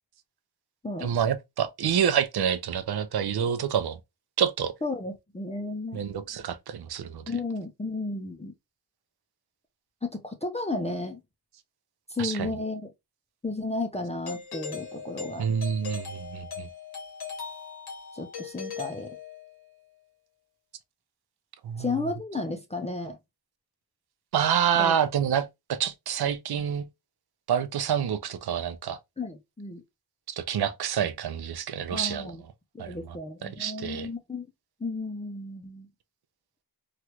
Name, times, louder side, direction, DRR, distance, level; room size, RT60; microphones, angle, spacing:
voice 1, 1.0-4.0 4.4-4.7 5.9-7.2 12.2-12.5 15.4-16.7 21.6-22.0 24.3-26.9 27.5-29.0 30.3-32.3 32.8-33.2 33.4-34.1, right 8 dB, 65° right, 0.5 m, -27 dB
voice 2, 4.8-6.0 7.3-8.5 10.0-11.2 12.1-12.9 13.4-15.5 18.1-19.2 21.8-23.2 24.8-24.9 29.2-29.8 31.9-32.4 32.7-34.5 34.8-35.9, left 2 dB, 15° left, 0.4 m, -33 dB
Doorbell, 14.3-19.7, left 5 dB, 65° left, 1.0 m, -39 dB
3.1 x 2.4 x 2.9 m
wide cardioid pair, 110°, 41 cm